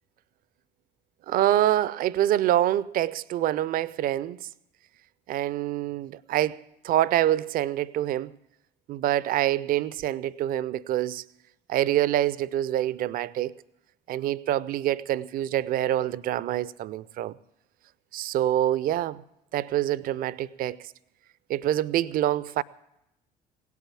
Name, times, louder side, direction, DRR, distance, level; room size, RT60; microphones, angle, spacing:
voice 1, 1.3-4.5 5.3-8.3 8.9-11.2 11.7-13.5 14.1-17.3 18.1-19.2 19.5-20.9 21.5-22.6, right 13 dB, 45° right, 0.5 m, -26 dB
17.5 x 8.4 x 8.5 m
figure-of-eight pair, 55°, 21 cm